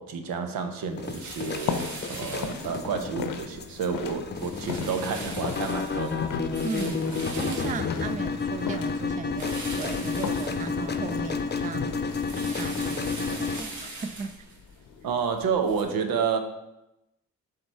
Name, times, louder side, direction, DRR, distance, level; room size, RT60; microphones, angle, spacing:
voice 1, 0.0-6.3 15.0-16.4, right 6 dB, 80° right, 7 dB, 0.8 m, -30 dB
sound 1, 1.0-13.6, left 4 dB, 30° left, 0.7 m, -31 dB
sound 2, 1.0-3.2 3.6-4.0 4.3-8.6 9.3-11.2 11.5-15.8, right 2 dB, 55° right, 1.6 m, -42 dB
sound 3, 1.3-15.3, left 6 dB, 70° left, 0.7 m, -39 dB
voice 2, 6.6-11.9 12.4-14.5, right 5 dB, 25° right, 12 dB, 0.4 m, -36 dB
7.3 x 3.3 x 4.5 m, 0.91 s
supercardioid pair, 55°, 35 cm